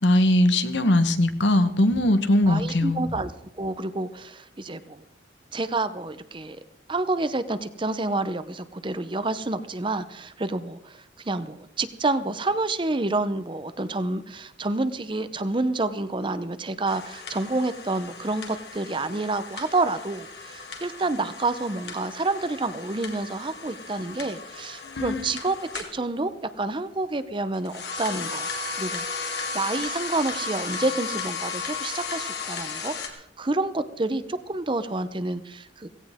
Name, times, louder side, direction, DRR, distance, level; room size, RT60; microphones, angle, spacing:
voice 1, 0.0-3.0 24.8-25.3, left 1 dB, 75° left, 10 dB, 1.2 m, -21 dB
voice 2, 2.5-3.3 3.6-5.0 5.5-6.6 6.9-28.5 28.7-35.9, right 2 dB, 25° right, 12 dB, 0.7 m, -28 dB
sound 1, 16.9-26.0 27.5-33.1, left 5 dB, 60° left, 2.4 m, -35 dB
17.0 x 16.5 x 3.6 m, 0.84 s
head